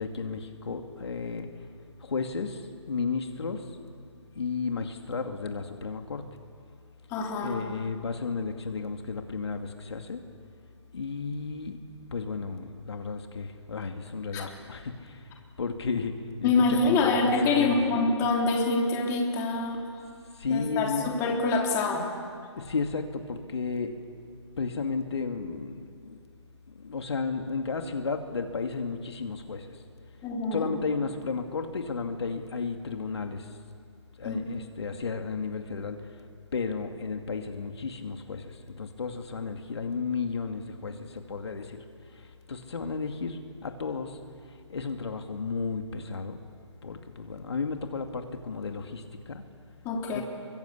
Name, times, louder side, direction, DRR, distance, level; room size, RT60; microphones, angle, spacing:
voice 1, 0.0-1.5 2.0-3.8 4.4-6.3 7.4-10.2 10.9-11.8 12.1-17.2 17.4-17.8 20.3-21.1 22.6-24.0 24.6-26.2 26.7-29.8 30.5-33.6 34.2-36.2 36.5-44.2 44.5-46.4 46.8-49.4 50.1-50.2, left 4 dB, 60° left, 5 dB, 2.5 m, -33 dB
voice 2, 7.1-7.6 14.3-14.4 16.4-19.8 20.5-22.0 30.2-30.7 34.2-34.4 49.8-50.2, left 3 dB, 15° left, 0 dB, 3.8 m, -26 dB
29.0 x 24.0 x 8.5 m, 2.2 s
figure-of-eight pair, 145°, 16 cm